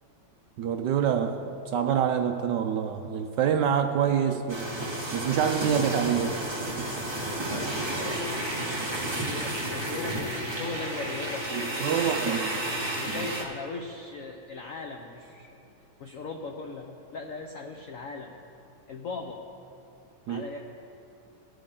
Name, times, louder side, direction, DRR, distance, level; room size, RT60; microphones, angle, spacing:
voice 1, 0.6-4.6 5.1-6.3 6.8-6.9 11.5-12.6 20.3-20.4, right 8 dB, 75° right, 6 dB, 1.0 m, -26 dB
sound 1, 4.5-13.4, right 1 dB, 15° right, 1.3 m, -32 dB
voice 2, 7.5-12.4 12.9-15.5 16.0-18.4 18.9-19.4 20.3-20.6, left 4 dB, 75° left, 3 dB, 0.7 m, -39 dB
18.5 x 8.6 x 3.8 m, 2.8 s
omnidirectional pair, 2.2 m